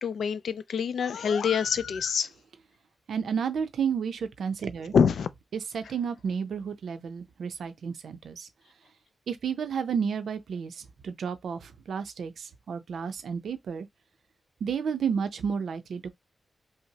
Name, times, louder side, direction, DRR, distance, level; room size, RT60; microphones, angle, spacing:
voice 1, 0.0-2.3 4.9-5.3, left 7 dB, 90° left, 0.4 m, -25 dB
voice 2, 3.1-4.9 5.5-8.5 9.3-13.9 14.6-16.1, right 6 dB, 85° right, 0.6 m, -31 dB
5.6 x 2.0 x 2.8 m
wide cardioid pair, 160°, 0 cm